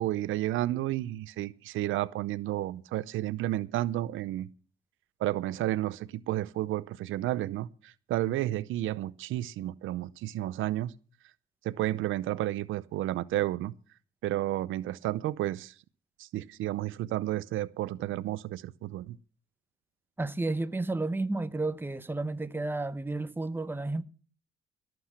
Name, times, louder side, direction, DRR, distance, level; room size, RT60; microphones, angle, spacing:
voice 1, 0.0-4.5 5.2-10.9 11.6-13.7 14.2-15.7 16.2-19.2, right 14 dB, 85° right, 0.6 m, -31 dB
voice 2, 20.2-24.0, right 2 dB, 10° right, 0.9 m, -32 dB
18.0 x 7.8 x 5.9 m
cardioid pair, 90°, 20 cm